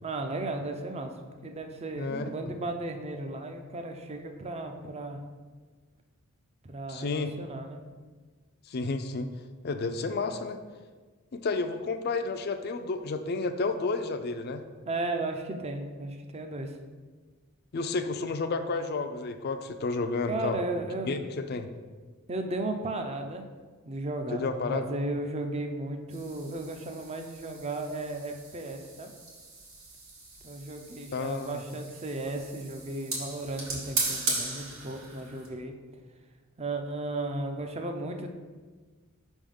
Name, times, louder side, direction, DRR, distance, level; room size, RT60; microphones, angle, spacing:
voice 1, 0.0-1.1 1.4-5.2 6.6-7.8 9.8-10.4 14.9-16.7 20.3-21.3 22.3-23.5 23.8-29.1 30.4-35.7 36.6-38.3, right 2 dB, 30° right, 5 dB, 0.5 m, -35 dB
voice 2, 2.0-2.3 6.9-7.3 8.7-9.3 9.6-10.6 11.3-14.6 17.7-20.6 21.1-21.7 24.3-24.8 31.1-31.6, left 3 dB, 45° left, 8 dB, 0.4 m, -31 dB
sound 1, 26.1-35.5, right 3 dB, 70° right, 1.6 m, -38 dB
5.4 x 3.6 x 5.3 m, 1.4 s
head